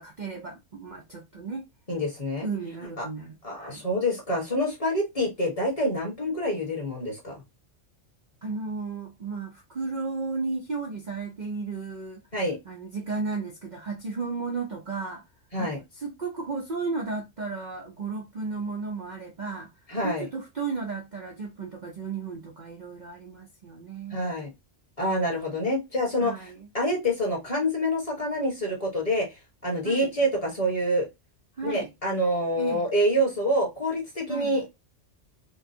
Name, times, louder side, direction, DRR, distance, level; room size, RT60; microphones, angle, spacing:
voice 1, 0.0-1.7 2.4-3.8 8.4-12.2 12.6-15.2 15.6-19.7 20.0-24.2 25.1-25.4 26.2-26.7 29.8-30.2 31.6-31.9 32.6-32.8 34.3-34.6, right 4 dB, 45° right, 0.7 m, -34 dB
voice 2, 1.9-2.5 3.0-3.1 3.4-7.4 12.3-12.6 15.5-15.8 19.9-20.3 24.1-24.5 25.0-26.5 26.7-29.3 29.6-31.1 31.6-34.6, equal, 30° left, 1.5 m, -27 dB
4.5 x 2.3 x 2.7 m
omnidirectional pair, 1.3 m